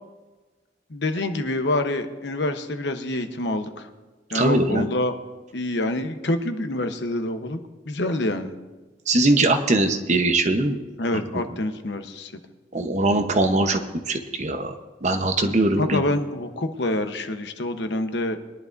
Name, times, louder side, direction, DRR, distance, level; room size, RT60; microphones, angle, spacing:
voice 1, 0.9-3.9 4.3-5.2 5.5-7.6 7.9-8.5 11.0-12.3 15.8-18.4, left 1 dB, 75° left, 7 dB, 1.0 m, -26 dB
voice 2, 4.3-4.9 9.1-10.8 11.3-11.4 12.7-14.7 15.0-16.0, right 2 dB, 40° right, 6 dB, 0.9 m, -21 dB
21.0 x 11.0 x 2.6 m, 1.2 s
head